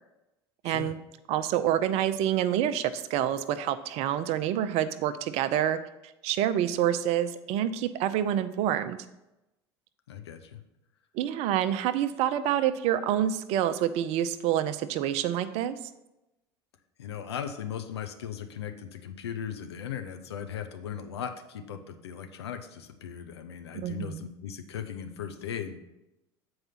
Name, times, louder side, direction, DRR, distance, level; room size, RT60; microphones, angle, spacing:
voice 1, 0.6-1.0 1.3-5.8 6.2-9.0 11.1-15.8 23.7-24.2, right 11 dB, 50° right, 12 dB, 0.5 m, -27 dB
voice 2, 10.1-10.6 17.0-25.8, left 8 dB, 75° left, 7 dB, 0.7 m, -38 dB
7.8 x 4.7 x 5.7 m, 0.94 s
figure-of-eight pair, 70°, 14 cm